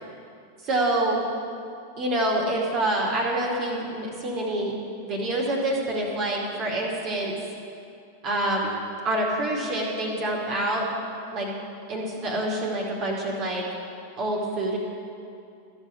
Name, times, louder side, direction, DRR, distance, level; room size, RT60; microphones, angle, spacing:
voice 1, 0.7-1.2 2.0-4.7 5.0-7.3 8.2-8.8 9.0-10.8 11.3-11.5 11.9-13.7 14.1-14.8, right 1 dB, 35° right, -2 dB, 2.6 m, -26 dB
14.0 x 6.2 x 8.7 m, 2.5 s
figure-of-eight pair, 90°, 0 cm